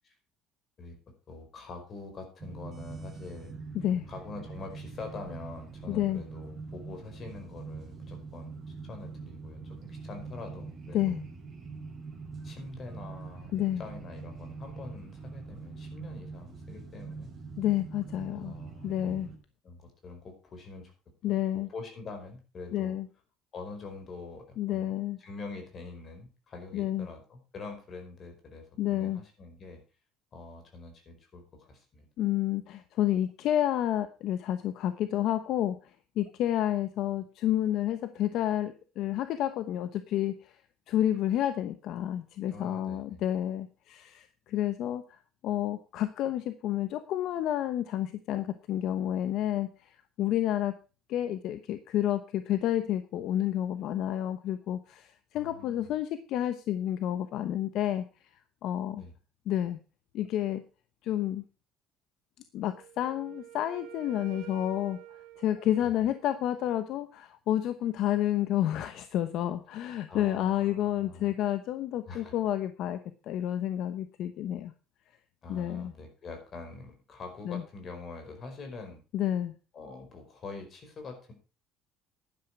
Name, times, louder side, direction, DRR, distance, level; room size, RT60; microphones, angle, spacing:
voice 1, 1.3-3.5 4.1-11.2 12.4-17.3 18.3-19.3 19.6-20.9 21.7-22.9 23.5-24.9 25.2-29.8 30.3-32.1 42.5-43.2 55.3-55.9 59.0-59.1 65.8-65.9 70.1-71.3 72.1-72.4 75.4-79.0 79.7-81.3, left 3 dB, 35° left, 5 dB, 4.9 m, -45 dB
sound 1, 2.4-19.4, right 4 dB, 25° right, 4.1 m, -43 dB
voice 2, 5.9-6.2 10.9-11.2 13.5-13.8 17.6-18.5 18.8-19.3 21.2-21.7 22.7-23.1 24.6-25.2 26.7-27.1 28.8-29.2 32.2-40.6 40.9-50.8 51.1-58.0 58.6-59.0 59.5-59.8 60.1-60.6 61.0-61.4 62.5-65.0 65.4-73.0 73.3-74.7 75.5-75.9 77.4-77.6 79.1-79.5, left 12 dB, 60° left, 11 dB, 1.0 m, -30 dB
Wind instrument woodwind instrument, 62.7-66.6, right 13 dB, 85° right, 2.0 m, -48 dB
11.5 x 10.5 x 4.8 m, 0.33 s
cardioid pair, 145°, 0 cm